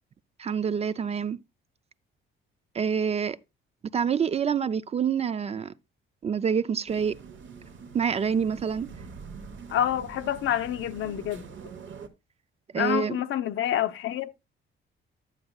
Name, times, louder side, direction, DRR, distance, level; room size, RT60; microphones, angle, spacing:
voice 1, 0.4-1.4 2.7-3.4 3.9-5.7 6.2-7.2 7.9-8.9 12.7-13.2, right 7 dB, 30° right, 0.4 m, -27 dB
sound 1, 6.9-12.1, right 5 dB, 65° right, 1.2 m, -44 dB
voice 2, 9.7-11.5 12.7-14.3, left 11 dB, 75° left, 0.8 m, -27 dB
11.0 x 7.7 x 2.3 m
cardioid pair, 135°, 21 cm